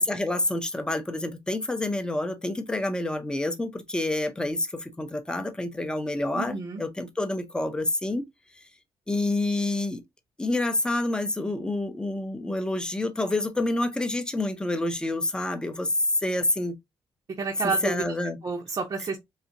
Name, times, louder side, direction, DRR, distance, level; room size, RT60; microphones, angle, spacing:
voice 1, 0.0-8.2 9.1-10.0 10.4-15.9 16.2-16.7 17.8-18.4, left 2 dB, 10° left, 0.6 m, -28 dB
voice 2, 6.3-6.8 17.4-18.0 18.4-19.2, right 5 dB, 40° right, 0.7 m, -29 dB
4.0 x 2.7 x 2.6 m
cardioid pair, 125°, 10 cm